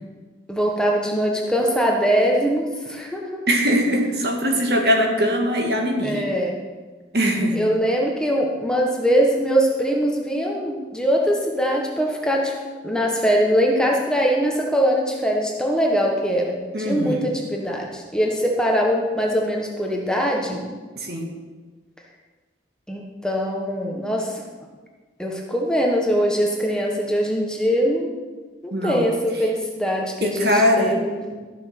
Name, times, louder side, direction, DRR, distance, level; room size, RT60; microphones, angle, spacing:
voice 1, 0.5-3.4 6.0-6.6 7.5-12.6 12.8-20.6 22.9-24.4 25.2-28.1 28.6-31.3, equal, 5° left, -1 dB, 1.2 m, -22 dB
voice 2, 3.5-6.2 7.1-7.7 16.7-17.3 21.0-21.3 28.7-29.1 30.2-30.9, equal, 60° right, 2 dB, 1.8 m, -21 dB
13.0 x 7.2 x 6.0 m, 1.4 s
head